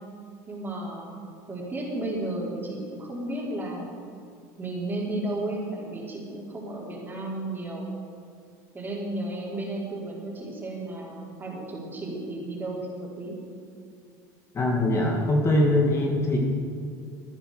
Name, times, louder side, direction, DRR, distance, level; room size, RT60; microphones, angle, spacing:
voice 1, 0.5-1.2 1.5-3.9 4.6-7.9 8.7-13.3, right 1 dB, 20° right, -3 dB, 4.0 m, -33 dB
voice 2, 14.5-16.4, left 1 dB, 30° left, 0 dB, 2.3 m, -22 dB
16.0 x 10.5 x 5.1 m, 2.4 s
supercardioid pair, 100°, 9 cm